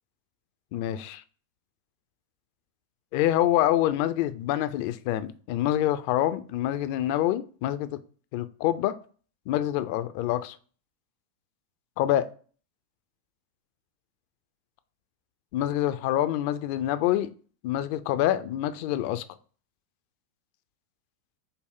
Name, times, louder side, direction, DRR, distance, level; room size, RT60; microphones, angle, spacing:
voice 1, 0.7-1.2 3.1-8.0 8.3-9.0 9.5-10.6 12.0-12.3 15.5-17.3 17.6-19.2, left 13 dB, 45° left, 12 dB, 0.3 m, -26 dB
5.6 x 2.0 x 3.6 m, 0.41 s
figure-of-eight pair, 90°, 0 cm